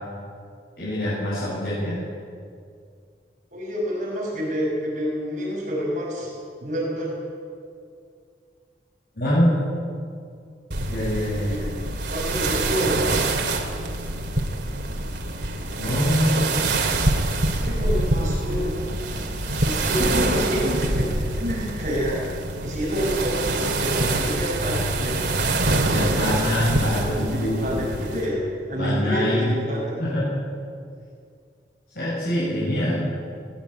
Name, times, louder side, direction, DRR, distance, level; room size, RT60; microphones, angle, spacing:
voice 1, 0.8-2.0 9.2-9.8 10.9-11.7 15.8-16.4 25.9-27.6 28.7-29.6 30.0-30.4 31.9-33.1, equal, 55° left, -8 dB, 7.7 m, -24 dB
voice 2, 3.5-6.3 6.6-7.2 12.1-13.0 17.6-18.8 19.6-21.1 21.4-22.3 22.6-25.2 26.8-29.9, equal, 45° right, -3 dB, 6.7 m, -28 dB
sound 1, 10.7-28.3, right 2 dB, 80° right, 2.6 m, -25 dB
20.0 x 20.0 x 9.1 m, 2.3 s
head